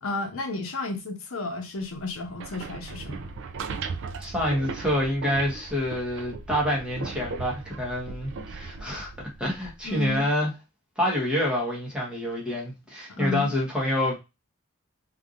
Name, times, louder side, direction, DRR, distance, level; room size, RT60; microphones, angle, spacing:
voice 1, 0.0-3.3 9.8-10.3 13.1-13.5, left 2 dB, 70° left, 0.8 m, -32 dB
sound 1, 2.2-10.2, right 4 dB, 55° right, 0.4 m, -38 dB
voice 2, 4.2-9.1 9.4-10.5 11.0-14.2, left 1 dB, 5° right, 1.2 m, -27 dB
3.3 x 2.6 x 2.5 m
head